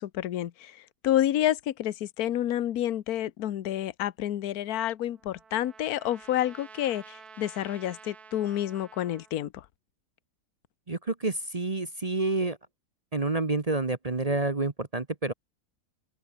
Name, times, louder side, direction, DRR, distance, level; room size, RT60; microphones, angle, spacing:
voice 1, 0.0-9.6, left 12 dB, 70° left, 1.3 m, -29 dB
Trumpet, 4.7-9.3, right 5 dB, 65° right, 2.6 m, -51 dB
voice 2, 10.9-12.6 13.1-15.3, right 3 dB, 25° right, 1.0 m, -28 dB
open air
omnidirectional pair, 1.7 m